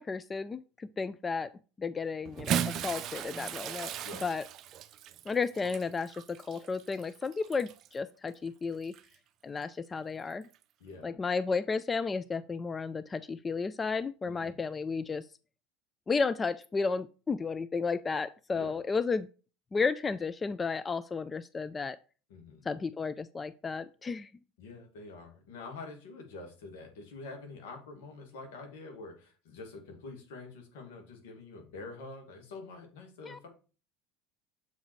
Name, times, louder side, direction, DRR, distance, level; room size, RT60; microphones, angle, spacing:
voice 1, 0.0-1.5 1.8-3.9 4.2-4.4 5.3-8.9 9.4-10.5 11.0-15.3 16.1-19.3 19.7-22.0 22.7-24.3 33.2-33.4, left 4 dB, 25° left, 15 dB, 0.3 m, -33 dB
Bathtub (filling or washing) / Splash splatter, 2.3-7.9 8.8-9.0 10.4-10.5, right 9 dB, 50° right, 0.5 m, -37 dB
voice 2, 10.8-11.2 14.3-14.6 18.5-18.8 22.3-22.6 24.6-33.5, left 3 dB, 75° left, 3 dB, 2.0 m, -46 dB
7.1 x 4.0 x 4.5 m, 0.36 s
hypercardioid pair, 80°, 0 cm